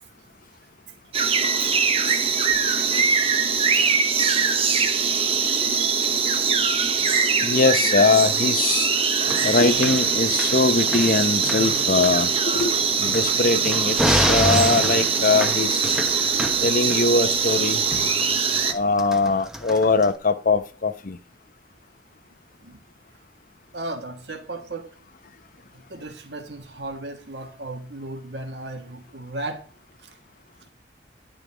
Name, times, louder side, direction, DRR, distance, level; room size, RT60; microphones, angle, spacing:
sound 1, 1.1-18.7, right 5 dB, 30° right, 0.8 m, -22 dB
voice 1, 2.7-3.0 3.3-3.8 4.2-4.7 6.6-7.1 22.6-22.8 23.7-25.0 25.7-29.7 30.0-30.2, right 2 dB, 65° right, 1.6 m, -37 dB
voice 2, 7.4-8.9 9.4-12.7 13.0-15.9 16.6-17.8 18.7-21.2, left 3 dB, 50° left, 0.8 m, -21 dB
sound 2, 9.3-20.1, equal, 5° right, 1.0 m, -29 dB
11.5 x 5.2 x 4.9 m
head